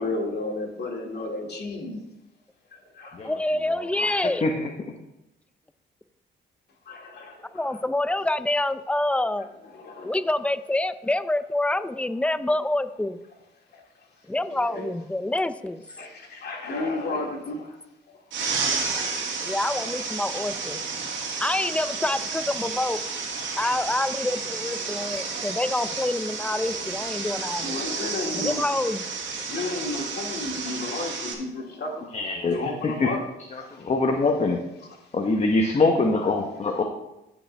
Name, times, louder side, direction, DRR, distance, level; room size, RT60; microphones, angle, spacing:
voice 1, 0.0-2.0 2.7-3.3 6.9-7.8 9.7-10.1 12.4-12.5 13.7-13.8 14.5-14.8 16.0-17.8 19.2-19.7 27.6-28.7 29.5-32.1 32.4-33.2 33.6-33.8 36.7-36.8, left 2 dB, 55° left, 0 dB, 2.2 m, -33 dB
voice 2, 3.2-4.6 7.5-9.5 10.0-13.2 14.3-15.8 19.4-20.8 21.4-23.0 23.6-27.8 28.3-29.0, left 1 dB, 5° left, 12 dB, 0.5 m, -27 dB
sound 1, 18.3-31.3, right 4 dB, 70° right, 2.0 m, -31 dB
voice 3, 32.1-33.1 33.5-34.6 35.1-36.8, left 3 dB, 35° left, 3 dB, 1.0 m, -24 dB
15.0 x 5.2 x 3.3 m, 0.92 s
cardioid pair, 90°, 20 cm